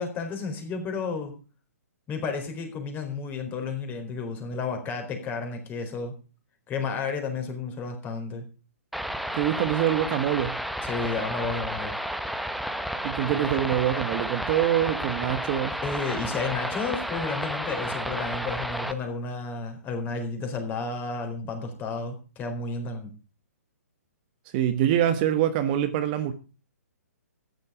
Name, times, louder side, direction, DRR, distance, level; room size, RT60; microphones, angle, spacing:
voice 1, 0.0-1.3 2.1-6.1 6.7-8.4 10.8-11.9 15.8-23.1, left 4 dB, 20° left, 4.2 m, -32 dB
sound 1, 8.9-18.9, equal, ahead, 0.9 m, -32 dB
voice 2, 9.3-10.5 13.0-15.8 24.5-26.3, right 11 dB, 35° right, 1.2 m, -25 dB
13.5 x 11.0 x 4.9 m
hypercardioid pair, 130°, 9 cm